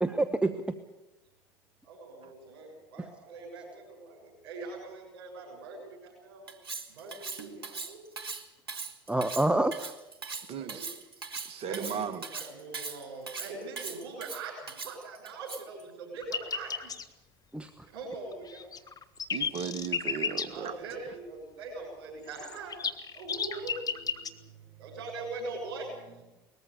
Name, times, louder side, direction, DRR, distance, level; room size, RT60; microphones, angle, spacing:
voice 1, 0.0-0.8 3.0-3.1 9.1-10.0 17.5-17.9, right 2 dB, 10° right, 9 dB, 1.2 m, -28 dB
voice 2, 1.8-6.5 6.9-8.1 10.5-10.9 11.6-16.9 17.9-18.7 20.5-22.8 23.1-26.2, right 3 dB, 70° right, -5 dB, 7.3 m, -42 dB
Cutlery silverware, 6.5-15.8, right 4 dB, 90° right, 1.4 m, -40 dB
voice 3, 10.5-10.9 11.5-12.2 19.3-20.7, right 7 dB, 50° right, 13 dB, 1.8 m, -36 dB
sound 1, 16.2-17.0 18.3-20.5 22.3-24.3, left 6 dB, 30° left, 1.6 m, -33 dB
20.5 x 14.5 x 9.7 m, 1.0 s
hypercardioid pair, 70°, 13 cm